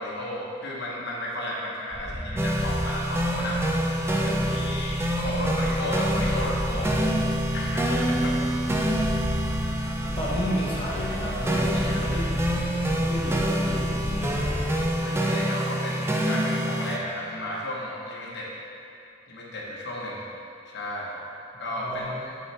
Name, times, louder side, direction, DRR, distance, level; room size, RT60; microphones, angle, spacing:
voice 1, 0.0-3.6 4.1-6.9 7.5-8.4 11.5-12.0 15.0-18.5 19.3-20.2 20.7-21.2 21.6-22.1, left 1 dB, 60° left, -4 dB, 1.1 m, -34 dB
sound 1, 1.9-15.0, equal, 50° right, 1.4 m, -33 dB
sound 2, 2.4-17.0, equal, 15° right, 0.4 m, -26 dB
voice 2, 10.0-12.6 13.0-14.6 21.8-22.3, equal, 30° left, -6 dB, 1.0 m, -32 dB
7.5 x 5.5 x 3.4 m, 2.7 s
head